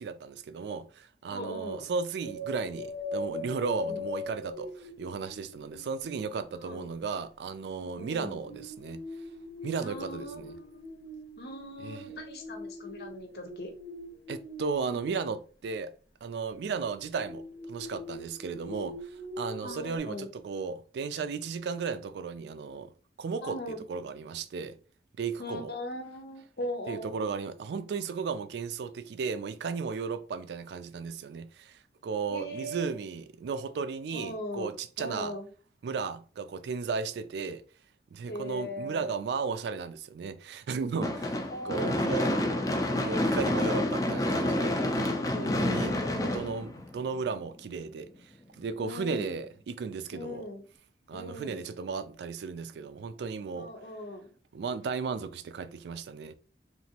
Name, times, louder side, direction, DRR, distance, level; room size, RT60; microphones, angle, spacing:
voice 1, 0.0-9.0 9.6-10.6 11.8-12.1 14.3-15.9 16.2-22.9 23.2-23.6 23.9-24.8 25.2-25.7 26.9-35.3 35.8-37.6 38.1-42.3 42.9-50.5 51.1-53.7 54.5-56.4, right 5 dB, 75° right, 0.3 m, -35 dB
voice 2, 1.3-1.9 3.9-4.0 6.6-6.9 8.0-8.4 9.8-10.9 11.4-13.7 19.6-20.3 23.4-23.8 25.4-27.1 32.3-32.9 34.1-34.7 35.0-35.5 38.3-39.1 41.5-42.3 43.6-44.0 44.9-46.4 48.8-49.3 50.1-50.7 51.1-51.7 53.5-54.3, left 1 dB, 65° left, 0.7 m, -40 dB
sound 1, 2.2-6.4 7.8-15.2 16.6-20.0, left 2 dB, 90° left, 1.2 m, -42 dB
Gunshot gunfire / Fireworks, 41.0-47.3, left 1 dB, 20° left, 0.3 m, -28 dB
2.9 x 2.6 x 2.8 m
head